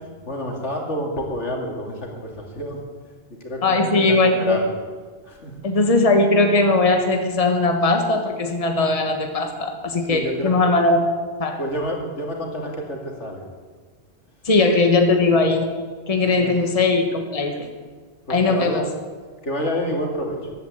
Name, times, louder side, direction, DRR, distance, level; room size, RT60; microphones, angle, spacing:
voice 1, 0.2-2.8 3.3-4.8 5.2-5.6 10.0-10.5 11.6-13.4 16.4-16.6 18.3-18.9 19.4-20.5, left 1 dB, 90° left, 1 dB, 2.9 m, -29 dB
voice 2, 3.6-4.6 5.6-11.0 11.4-11.6 14.4-15.7 16.1-17.7 18.3-18.8, left 3 dB, 30° left, 4 dB, 1.4 m, -19 dB
14.5 x 11.5 x 8.0 m, 1.5 s
omnidirectional pair, 1.2 m